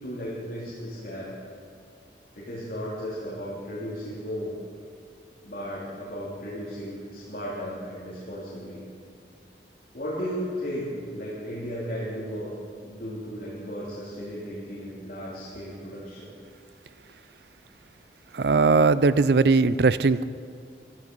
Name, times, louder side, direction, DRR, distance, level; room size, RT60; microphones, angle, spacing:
voice 1, 0.0-1.3 2.3-4.5 5.4-8.8 9.9-12.5 12.8-16.3, equal, 50° left, -8 dB, 3.2 m, -35 dB
voice 2, 18.3-20.2, right 4 dB, 65° right, 16 dB, 0.5 m, -19 dB
14.5 x 14.5 x 5.4 m, 2.2 s
head